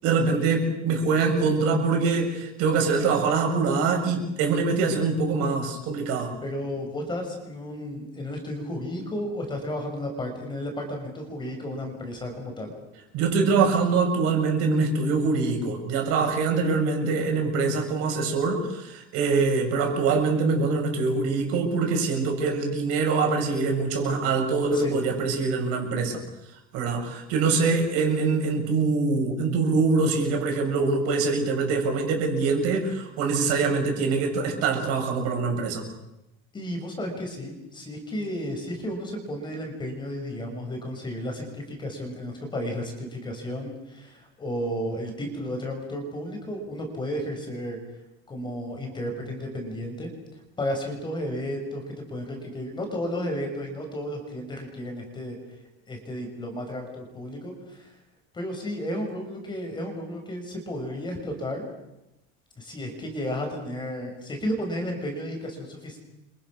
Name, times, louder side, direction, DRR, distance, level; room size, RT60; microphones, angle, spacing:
voice 1, 0.0-6.3 13.1-26.2 26.7-35.8, right 4 dB, 55° right, 3 dB, 7.5 m, -24 dB
voice 2, 6.4-12.7 24.7-25.0 36.5-47.8 48.3-50.1 50.6-55.4 55.9-57.9 58.3-61.6 62.6-66.0, equal, 15° left, 3 dB, 5.8 m, -33 dB
30.0 x 26.0 x 6.4 m, 0.91 s
cardioid pair, 170°, 29 cm